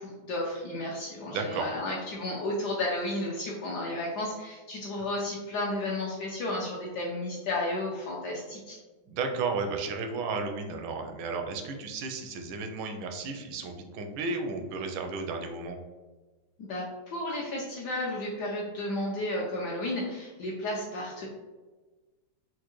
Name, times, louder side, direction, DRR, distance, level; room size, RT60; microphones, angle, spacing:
voice 1, 0.0-8.8 16.6-21.3, left 1 dB, 70° left, -3 dB, 1.0 m, -33 dB
voice 2, 1.3-1.7 9.1-15.8, right 4 dB, 80° right, 4 dB, 1.3 m, -33 dB
4.4 x 2.2 x 3.0 m, 1.2 s
omnidirectional pair, 2.2 m